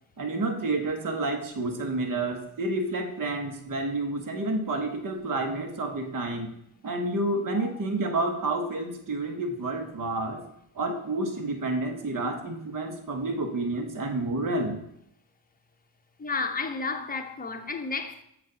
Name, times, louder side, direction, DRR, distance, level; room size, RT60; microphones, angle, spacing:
voice 1, 0.2-6.5 6.8-10.4 10.7-14.8, right 2 dB, 50° right, 1.2 m, -29 dB
voice 2, 16.2-18.2, left 4 dB, 20° left, 0.8 m, -32 dB
7.4 x 2.6 x 5.6 m
cardioid pair, 65°, 43 cm